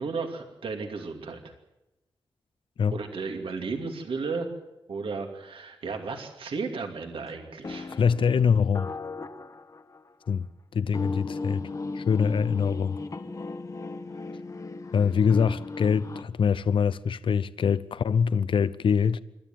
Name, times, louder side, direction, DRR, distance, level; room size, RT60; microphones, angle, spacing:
voice 1, 0.0-1.4 2.9-4.5 4.9-7.9, right 4 dB, 85° right, 2.6 m, -34 dB
sound 1, 7.2-7.3 7.6-10.2 10.9-16.2, left 3 dB, 40° left, 1.2 m, -36 dB
voice 2, 8.0-8.9 10.3-10.5 10.7-11.6 11.9-13.0 14.9-19.2, left 6 dB, 70° left, 0.7 m, -24 dB
27.0 x 13.5 x 9.2 m
wide cardioid pair, 115°, 9 cm